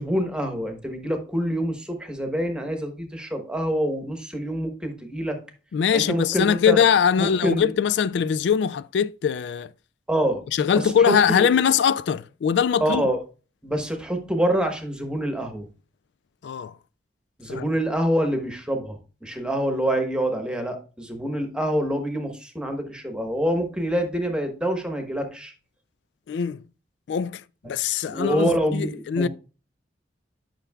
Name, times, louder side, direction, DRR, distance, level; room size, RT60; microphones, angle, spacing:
voice 1, 0.0-5.4 5.9-6.8 7.2-7.7 10.1-10.4 10.7-11.5 12.8-13.2 13.6-15.7 17.4-25.5 27.6-27.7 28.1-29.3, equal, 5° right, 1.2 m, -26 dB
voice 2, 5.7-9.7 10.5-13.0 16.4-16.7 17.5-17.6 26.3-26.6 27.1-27.4 27.7-29.3, left 7 dB, 70° left, 0.3 m, -22 dB
10.0 x 5.8 x 2.3 m
head